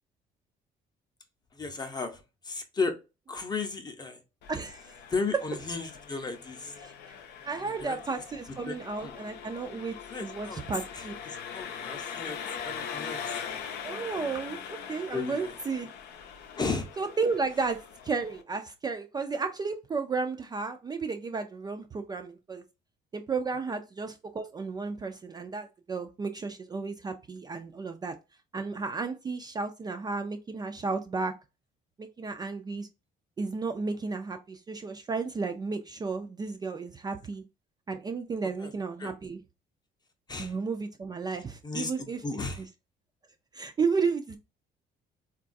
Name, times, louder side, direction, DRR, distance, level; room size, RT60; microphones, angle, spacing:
voice 1, 1.5-2.9 3.3-4.2 5.1-6.7 7.6-8.0 8.7-8.8 9.0-9.1 10.1-10.6 10.9-12.4 12.6-13.6 15.1-15.5 16.6-16.9 38.6-38.7 39.0-39.1 40.3-40.5 41.6-42.6, left 4 dB, 25° left, 0.7 m, -34 dB
Engine, 4.4-18.4, left 7 dB, 75° left, 0.6 m, -42 dB
voice 2, 4.5-5.0 5.3-5.4 6.8-7.2 7.4-10.0 10.2-11.2 13.8-15.9 17.0-22.6 23.1-28.2 28.5-31.3 32.0-32.9 33.4-37.4 37.9-39.4 40.4-42.2 42.6-42.7 43.5-44.4, right 4 dB, 25° right, 0.3 m, -33 dB
3.8 x 2.3 x 2.5 m
cardioid pair, 110°, 17 cm